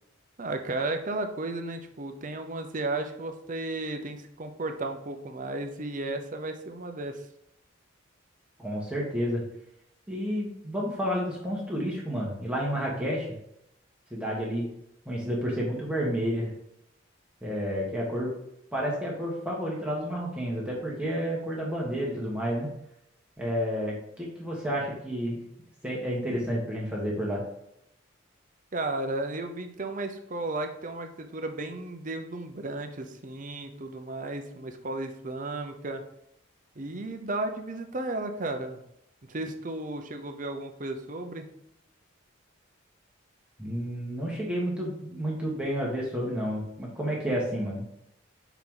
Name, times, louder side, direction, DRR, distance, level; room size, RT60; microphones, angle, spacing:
voice 1, 0.4-7.2 28.7-36.0 36.8-38.8 39.2-41.5, right 2 dB, 40° right, 6 dB, 0.6 m, -34 dB
voice 2, 8.6-9.4 10.1-13.3 14.1-14.6 15.0-16.5 17.4-18.3 18.7-22.7 23.4-25.4 25.8-27.4 43.6-47.8, equal, 5° right, -5 dB, 1.2 m, -30 dB
5.8 x 4.6 x 3.7 m, 0.78 s
head